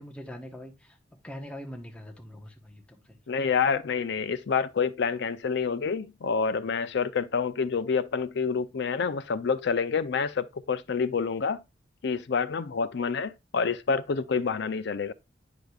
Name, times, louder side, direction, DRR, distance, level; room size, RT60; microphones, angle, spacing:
voice 1, 0.0-3.2, equal, 5° left, 1.0 m, -43 dB
voice 2, 3.3-11.6 12.0-15.1, left 5 dB, 65° left, 0.5 m, -28 dB
9.2 x 5.0 x 2.4 m
head